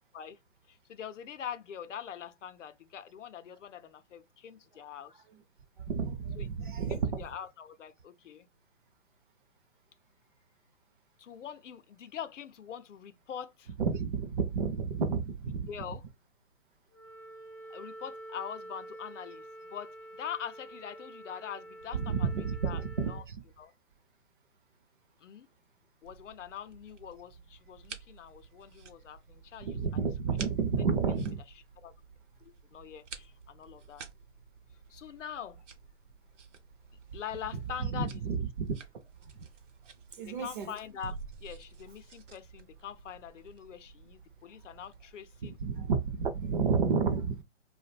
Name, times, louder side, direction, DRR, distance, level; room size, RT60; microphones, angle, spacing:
voice 1, 0.7-5.2 6.4-6.5 6.9-8.5 11.2-13.7 15.7-16.0 17.7-22.8 23.1-23.2 23.6-23.7 25.2-25.5 26.0-29.9 31.8-31.9 32.4-34.0 34.9-35.6 37.1-38.5 40.2-45.6, left 8 dB, 75° left, 0.6 m, -43 dB
voice 2, 5.9-7.2 13.8-15.9 22.0-23.4 29.6-31.4 37.9-38.7 39.4-39.5 40.2-40.7 45.4-47.4, right 5 dB, 45° right, 0.5 m, -31 dB
Wind instrument woodwind instrument, 16.9-23.2, right 1 dB, 10° left, 0.4 m, -48 dB
sound 1, 26.0-45.7, right 5 dB, 70° right, 0.8 m, -51 dB
2.5 x 2.2 x 3.0 m
hypercardioid pair, 155°, 37 cm